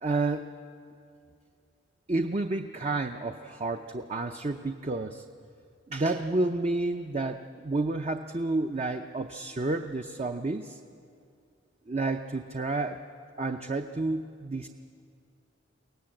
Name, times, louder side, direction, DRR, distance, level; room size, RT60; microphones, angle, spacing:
voice 1, 0.0-0.5 2.1-5.2 5.9-10.8 11.9-13.0 13.4-14.7, right 2 dB, 35° right, 5 dB, 0.6 m, -30 dB
23.5 x 17.5 x 7.7 m, 2.4 s
head